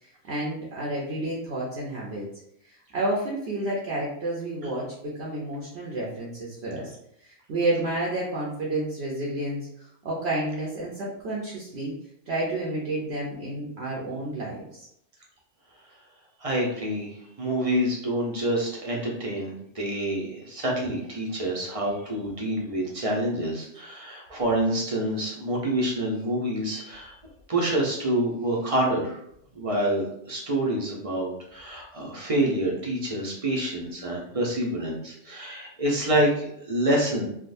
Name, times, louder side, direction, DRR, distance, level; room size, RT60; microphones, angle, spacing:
voice 1, 0.2-2.3 2.9-6.9 7.2-11.9 12.3-14.9, right 1 dB, 60° right, -4 dB, 0.9 m, -30 dB
voice 2, 16.4-27.1 27.5-29.2 29.6-37.3, right 1 dB, 35° right, -2 dB, 0.6 m, -27 dB
3.5 x 2.4 x 2.5 m, 0.73 s
omnidirectional pair, 1.3 m